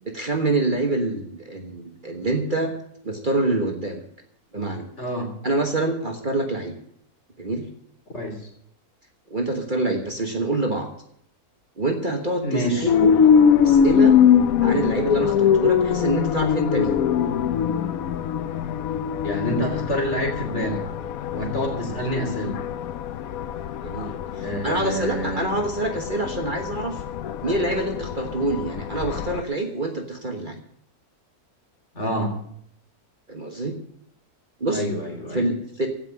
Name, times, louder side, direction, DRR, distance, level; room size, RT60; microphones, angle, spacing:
voice 1, 0.0-2.7 3.0-4.0 4.5-4.9 5.4-6.8 7.4-7.7 9.3-10.9 11.8-13.1 13.6-14.2 14.6-17.0 21.7-21.9 23.8-27.0 27.4-30.6 33.3-33.8 34.6-34.8 35.3-35.9, right 2 dB, 35° right, 3 dB, 1.5 m, -26 dB
voice 2, 5.0-5.3 8.1-8.4 12.4-12.9 19.2-20.8 21.3-22.6 24.4-25.6 31.9-32.3 34.7-35.4, equal, 45° left, 2 dB, 3.4 m, -27 dB
sound 1, 12.9-29.4, left 8 dB, 70° left, 1.1 m, -22 dB
15.5 x 5.9 x 9.4 m, 0.68 s
omnidirectional pair, 1.6 m